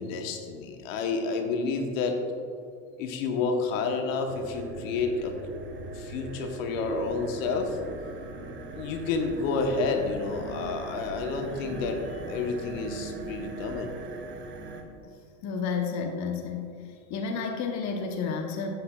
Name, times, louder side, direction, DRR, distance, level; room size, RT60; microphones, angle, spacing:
voice 1, 0.0-2.2 3.0-5.3 5.9-7.8 8.7-12.0 12.3-14.0, left 4 dB, 70° left, 4 dB, 1.0 m, -30 dB
sound 1, 4.3-14.8, right 3 dB, 30° right, 0.9 m, -40 dB
voice 2, 15.4-16.8 17.1-18.7, left 5 dB, 45° left, 3 dB, 0.9 m, -31 dB
8.1 x 7.8 x 2.3 m, 2.4 s
hypercardioid pair, 95°, 41 cm